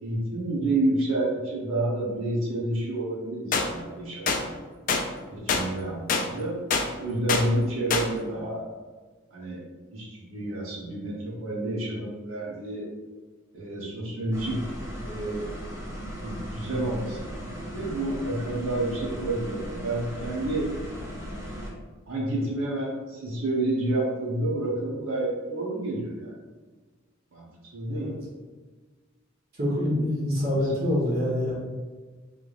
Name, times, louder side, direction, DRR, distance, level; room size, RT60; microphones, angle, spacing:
voice 1, 0.0-4.4 5.3-6.6 7.0-8.6 9.3-9.6 9.9-12.9 13.5-14.6 15.1-15.5 16.2-20.7 22.1-26.3 27.3-28.1 30.3-30.6, right 1 dB, 75° right, -4 dB, 1.1 m, -29 dB
sound 1, 3.5-3.7 4.3-4.4 4.9-5.0 5.5-5.6 6.1-6.2 6.7-6.9 7.3-7.4 7.9-8.1, left 4 dB, 40° left, 0.3 m, -24 dB
sound 2, 14.3-21.7, equal, 15° right, 0.6 m, -37 dB
voice 2, 29.6-31.5, left 1 dB, 45° right, -6 dB, 1.2 m, -26 dB
3.4 x 3.3 x 2.5 m, 1.3 s
head